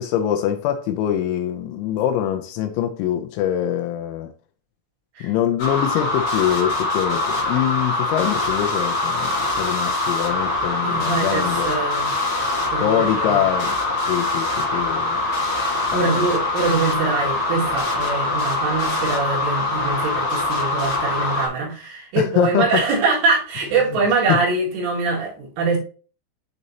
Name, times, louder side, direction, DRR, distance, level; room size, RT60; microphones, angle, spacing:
voice 1, 0.0-4.3 5.2-11.7 12.8-13.8 14.0-15.2 15.9-16.3 22.2-22.8 23.9-24.0 24.3-24.4, left 11 dB, 85° left, 2.7 m, -24 dB
sound 1, 5.6-21.5, left 2 dB, 70° left, 1.3 m, -23 dB
voice 2, 10.8-12.1 12.7-13.4 15.9-25.8, right 4 dB, 75° right, 4.2 m, -23 dB
8.7 x 4.0 x 2.7 m
omnidirectional pair, 5.9 m